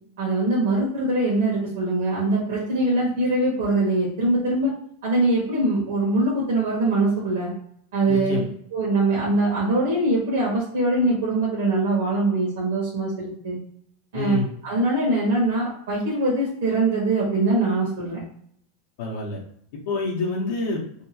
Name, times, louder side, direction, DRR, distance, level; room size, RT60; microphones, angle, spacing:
voice 1, 0.2-4.7 5.0-7.5 7.9-8.5 8.7-13.6 14.1-14.4 14.6-18.2, right 2 dB, 70° right, -4 dB, 1.0 m, -22 dB
voice 2, 8.1-8.4 14.1-14.5 19.0-19.4 19.9-20.8, left 4 dB, 55° left, -3 dB, 0.6 m, -27 dB
2.7 x 2.3 x 2.8 m, 0.65 s
supercardioid pair, 175°, 0 cm